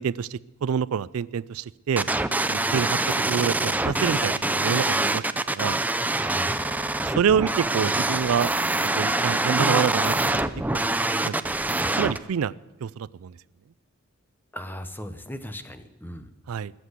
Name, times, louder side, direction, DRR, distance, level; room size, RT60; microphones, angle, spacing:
voice 1, 0.0-2.1 2.5-5.2 5.5-5.8 7.0-8.5 8.9-10.9 11.2-11.5 12.0-12.6 12.8-13.4 16.5-16.7, right 7 dB, 80° right, 20 dB, 0.4 m, -27 dB
sound 1, 2.0-12.2, right 2 dB, 10° right, 0.5 m, -25 dB
voice 2, 6.3-6.8 14.5-16.3, equal, 10° left, 10 dB, 0.9 m, -38 dB
21.5 x 7.6 x 8.1 m, 1.2 s
head